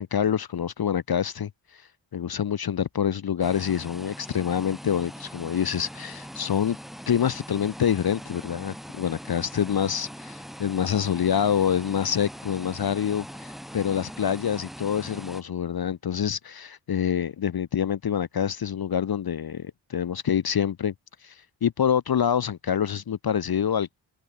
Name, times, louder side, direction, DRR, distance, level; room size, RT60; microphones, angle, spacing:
voice 1, 0.0-1.8 2.1-6.8 7.1-20.9 21.2-24.0, left 8 dB, 55° left, 0.6 m, -26 dB
sound 1, 3.4-15.4, equal, ahead, 1.6 m, -41 dB
wide cardioid pair, 90°, 45 cm